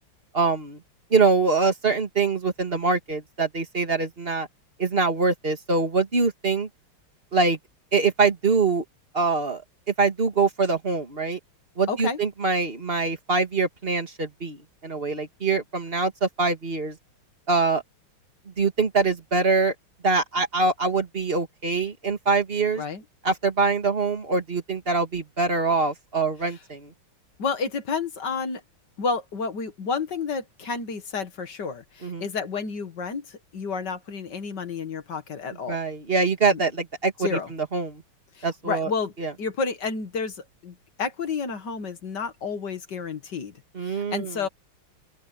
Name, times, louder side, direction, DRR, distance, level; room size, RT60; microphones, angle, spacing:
voice 1, 0.3-0.8 1.1-4.5 4.8-6.7 7.3-7.6 7.9-8.8 9.1-9.6 10.0-11.4 11.8-14.6 14.8-17.0 17.5-17.8 18.6-19.7 20.0-22.8 23.2-26.9 32.0-32.2 35.7-38.0 38.4-38.9 39.2-39.3 43.7-44.4, right 4 dB, 25° right, 2.3 m, -24 dB
voice 2, 11.9-12.2 22.8-23.0 27.4-28.6 29.0-35.8 36.5-36.6 37.2-37.5 38.4-39.1 39.4-43.5 43.8-44.5, left 5 dB, 55° left, 2.1 m, -30 dB
open air
omnidirectional pair, 2.4 m